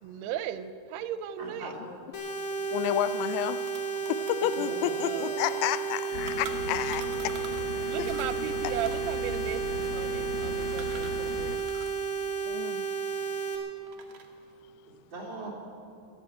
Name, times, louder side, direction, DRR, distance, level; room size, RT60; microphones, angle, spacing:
voice 1, 0.0-1.8 4.6-5.8 7.8-11.7, right 10 dB, 90° right, 12 dB, 2.6 m, -37 dB
voice 2, 1.4-2.2 4.4-4.9 15.1-15.5, right 2 dB, 30° right, -5 dB, 3.7 m, -42 dB
sound 1, 2.1-13.6, right 5 dB, 50° left, 3.1 m, -32 dB
voice 3, 2.7-3.6 4.1-7.3 12.5-12.8, left 12 dB, 85° left, 12 dB, 2.0 m, -30 dB
sound 2, 3.0-3.1 3.3-7.7 8.0-12.0 12.3-13.5 13.8-14.4, right 6 dB, 65° right, 1.8 m, -47 dB
Train arriving Pitlochry, 6.1-11.6, left 3 dB, 70° left, 2.0 m, -38 dB
13.5 x 11.5 x 9.1 m, 2.7 s
omnidirectional pair, 4.6 m